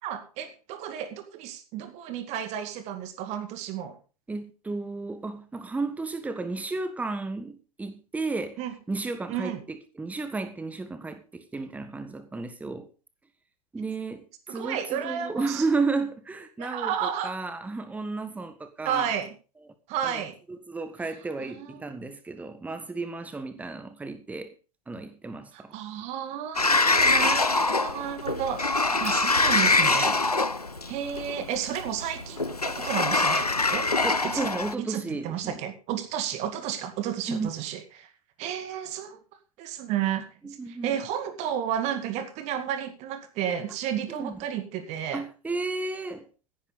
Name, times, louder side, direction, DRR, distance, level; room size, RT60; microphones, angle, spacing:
voice 1, 0.0-4.0 8.6-8.7 9.3-9.6 14.5-15.6 16.6-17.4 18.8-19.4 19.9-20.4 21.4-21.8 25.5-30.3 30.9-33.9 34.2-34.5 34.8-38.1 38.4-39.2 39.6-45.2, right 9 dB, 35° right, 2.1 m, -32 dB
voice 2, 4.3-8.6 8.9-12.9 13.7-19.1 20.0-20.2 20.5-24.5 24.9-25.7 34.0-35.6 37.3-37.5 40.4-40.9 44.1-44.4 45.1-46.2, right 3 dB, 10° right, 1.4 m, -33 dB
Sliding door, 26.6-34.7, left 3 dB, 90° left, 0.8 m, -24 dB
16.5 x 10.5 x 4.0 m
figure-of-eight pair, 95°, 19 cm